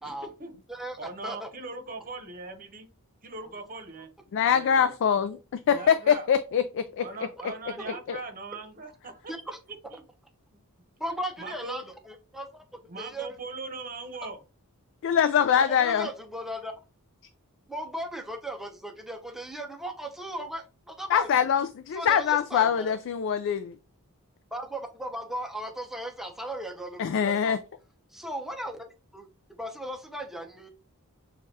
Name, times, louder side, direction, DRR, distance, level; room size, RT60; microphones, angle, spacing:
voice 1, 0.0-0.5 1.0-2.9 3.2-4.1 4.5-5.0 5.7-6.3 7.0-9.3 9.7-10.0 10.5-10.6 11.4-11.8 12.9-14.4, right 3 dB, 40° right, 0.9 m, -40 dB
voice 2, 0.7-1.5 7.8-7.9 9.3-9.6 11.0-12.6 13.0-13.3 15.6-16.7 17.7-21.5 21.9-22.9 24.5-27.6 28.1-28.8 29.1-30.7, right 1 dB, ahead, 0.6 m, -37 dB
voice 3, 4.3-7.0 8.1-8.2 15.0-16.1 21.1-23.7 27.0-27.6, left 8 dB, 60° left, 0.3 m, -24 dB
6.3 x 2.3 x 2.8 m
head